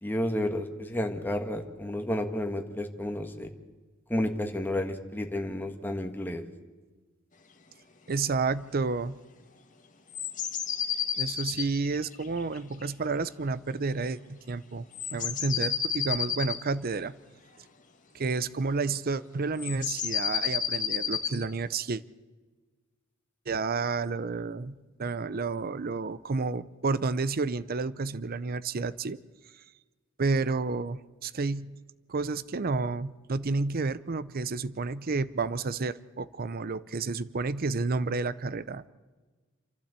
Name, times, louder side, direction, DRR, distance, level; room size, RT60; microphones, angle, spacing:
voice 1, 0.0-3.5 4.1-6.4, left 1 dB, 10° left, 4 dB, 1.7 m, -31 dB
voice 2, 8.1-9.2 11.2-14.9 15.1-17.1 18.1-22.0 23.5-29.2 30.2-31.7 32.1-38.8, right 4 dB, 50° right, 16 dB, 0.6 m, -30 dB
sound 1, 10.1-12.9 14.9-16.6 19.6-21.4, left 8 dB, 40° left, 1.7 m, -31 dB
28.5 x 12.0 x 8.2 m, 1.3 s
head